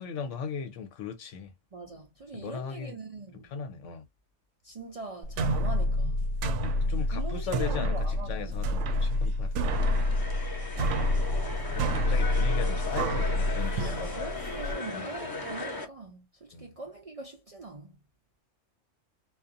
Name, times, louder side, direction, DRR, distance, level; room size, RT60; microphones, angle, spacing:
voice 1, 0.0-1.5 2.3-3.0 3.4-4.0 6.6-9.6 11.7-14.1 14.9-15.3 16.5-16.7, left 6 dB, 80° left, 0.9 m, -38 dB
voice 2, 1.7-3.5 4.6-6.2 7.1-8.7 10.8-11.0 13.8-18.0, right 3 dB, 55° right, 0.4 m, -42 dB
sound 1, 5.2-14.7, left 1 dB, 75° right, 0.9 m, -28 dB
sound 2, 9.7-15.9, left 3 dB, 25° left, 0.6 m, -37 dB
2.4 x 2.4 x 2.5 m
omnidirectional pair, 1.3 m